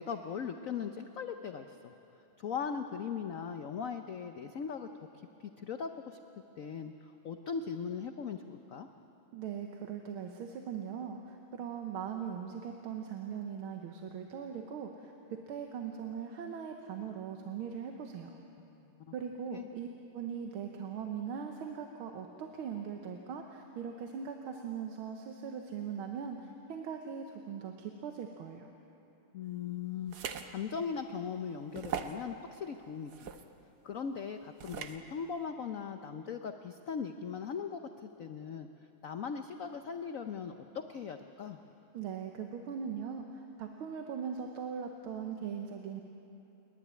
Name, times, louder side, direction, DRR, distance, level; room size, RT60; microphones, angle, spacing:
voice 1, 0.0-1.9 2.4-5.1 5.4-6.2 6.6-8.9 18.6-18.7 19.0-19.1 19.5-19.7 29.3-33.3 33.8-38.7 39.0-41.6, left 6 dB, 90° left, 7 dB, 0.7 m, -39 dB
voice 2, 9.3-18.4 19.1-28.7 41.9-46.0, right 7 dB, 75° right, 3 dB, 1.8 m, -40 dB
sound 1, 30.1-30.5 31.0-31.1 31.7-32.2 33.1-33.4 34.6-35.0, right 7 dB, 55° right, 1.3 m, -39 dB
29.0 x 11.5 x 9.7 m, 2.9 s
omnidirectional pair, 2.4 m